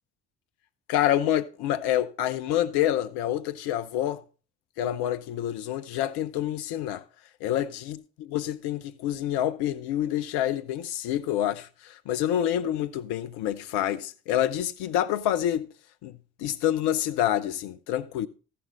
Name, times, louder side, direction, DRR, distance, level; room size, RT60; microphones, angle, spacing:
voice 1, 0.9-4.2 4.8-7.0 7.4-15.7 16.0-16.1 16.4-18.3, left 11 dB, 60° left, 0.7 m, -27 dB
14.0 x 5.6 x 3.9 m
figure-of-eight pair, 45°, 43 cm